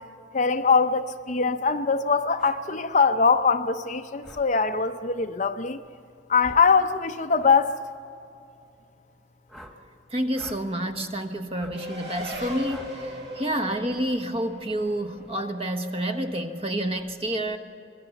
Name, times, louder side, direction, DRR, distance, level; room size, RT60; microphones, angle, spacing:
voice 1, 0.3-5.8 6.3-7.8, left 5 dB, 40° left, 0.7 m, -22 dB
sound 1, 2.4-2.6 4.2-4.5 6.4-6.7 7.3-7.6 9.5-9.8 10.3-10.6 11.6-11.8 12.7-12.9, equal, ahead, 1.6 m, -44 dB
voice 2, 10.1-17.6, right 1 dB, 30° right, 1.3 m, -29 dB
Race car auto racing, 11.7-16.7, equal, 65° right, 6.2 m, -39 dB
25.5 x 21.0 x 7.1 m
head